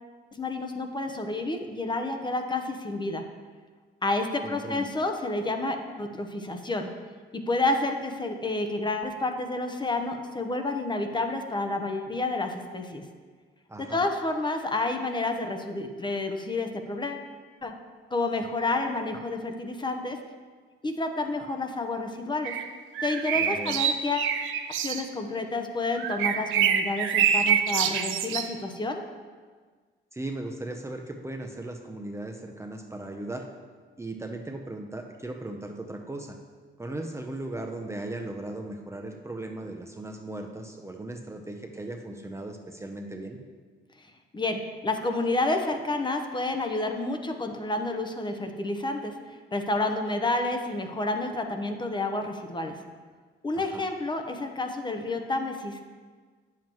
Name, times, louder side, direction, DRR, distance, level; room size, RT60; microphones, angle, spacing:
voice 1, 0.4-3.2 4.0-6.9 7.3-13.0 13.8-17.2 17.6-17.7 18.1-20.2 20.8-22.6 23.0-24.3 24.7-29.0 44.0-49.2 49.5-52.8 53.4-55.8, left 2 dB, 25° left, 5 dB, 0.8 m, -30 dB
voice 2, 4.4-4.9 13.7-14.0 23.3-23.8 30.1-33.5 34.0-36.4 36.8-43.4 53.5-53.9, right 2 dB, 15° right, 2 dB, 0.6 m, -37 dB
sound 1, 22.4-22.7 23.0-25.0 26.0-28.5, right 8 dB, 80° right, 0.5 m, -26 dB
8.9 x 7.4 x 3.0 m, 1.5 s
cardioid pair, 90°, 20 cm